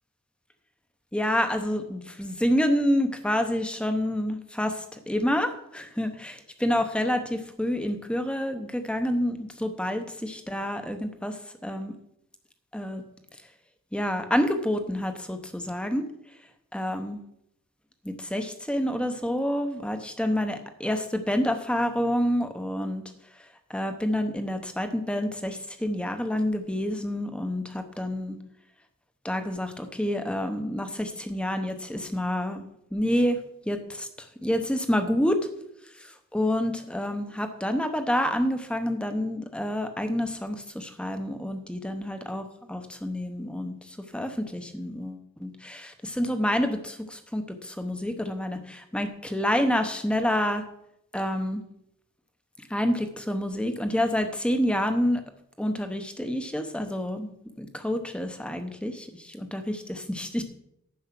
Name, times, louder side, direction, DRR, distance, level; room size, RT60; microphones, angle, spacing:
voice 1, 1.1-11.9 12.7-13.0 13.9-16.0 16.7-17.2 18.0-23.0 23.7-28.4 29.2-32.6 32.9-33.4 33.7-34.1 34.4-35.4 36.0-50.6 51.1-51.6 52.7-55.2 55.6-60.4, equal, 5° left, 7 dB, 0.9 m, -28 dB
10.5 x 7.2 x 5.9 m, 0.78 s
head